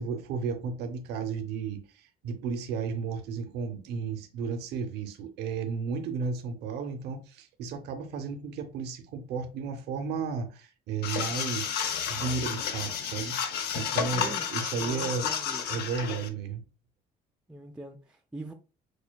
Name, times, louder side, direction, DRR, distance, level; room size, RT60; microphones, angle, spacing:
voice 1, 0.0-11.8 12.1-15.3 15.7-16.6, right 5 dB, 80° right, 0.6 m, -33 dB
sound 1, 11.0-16.3, left 8 dB, 75° left, 0.6 m, -31 dB
voice 2, 14.1-14.5 14.7-15.7 17.5-18.5, right 2 dB, 5° right, 0.3 m, -42 dB
6.4 x 2.2 x 2.2 m
cardioid pair, 110°, 17 cm